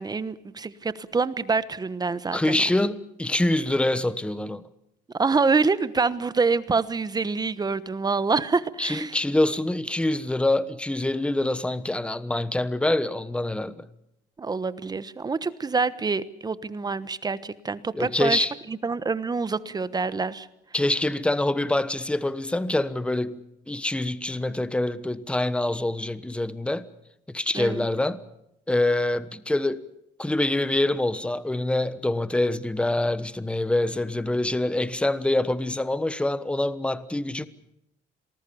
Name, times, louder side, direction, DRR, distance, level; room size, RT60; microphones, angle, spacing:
voice 1, 0.0-2.6 5.1-9.2 14.4-20.5 27.5-27.9, right 4 dB, 25° right, 1.2 m, -26 dB
voice 2, 2.3-4.6 8.8-13.9 17.9-18.5 20.7-26.9 27.3-28.2 28.7-29.8 30.2-37.5, left 1 dB, 5° left, 1.2 m, -25 dB
27.0 x 20.0 x 7.1 m
cardioid pair, 110°, 17 cm